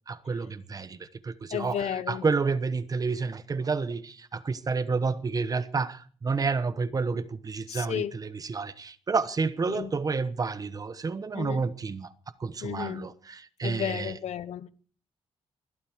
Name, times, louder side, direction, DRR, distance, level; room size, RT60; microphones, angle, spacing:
voice 1, 0.1-12.1 12.4-14.1, right 4 dB, 35° right, 1.0 m, -30 dB
voice 2, 1.5-2.3 7.7-8.2 9.7-9.9 11.3-11.7 12.6-13.1 13.6-14.7, left 9 dB, 85° left, 0.9 m, -33 dB
20.5 x 12.5 x 4.7 m
wide cardioid pair, 135°, 11 cm